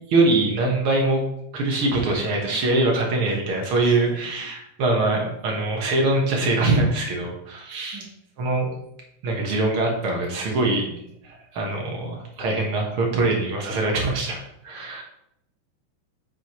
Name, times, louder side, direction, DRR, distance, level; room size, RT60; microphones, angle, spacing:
voice 1, 0.1-1.2 1.5-8.0 8.4-8.8 9.2-10.8 11.2-15.0, right 2 dB, 55° right, 0 dB, 1.7 m, -23 dB
voice 2, 3.3-4.2 5.1-5.2 7.9-8.1 10.6-11.1, right 4 dB, 75° right, -3 dB, 1.1 m, -43 dB
8.3 x 6.0 x 3.1 m, 0.79 s
omnidirectional pair, 3.8 m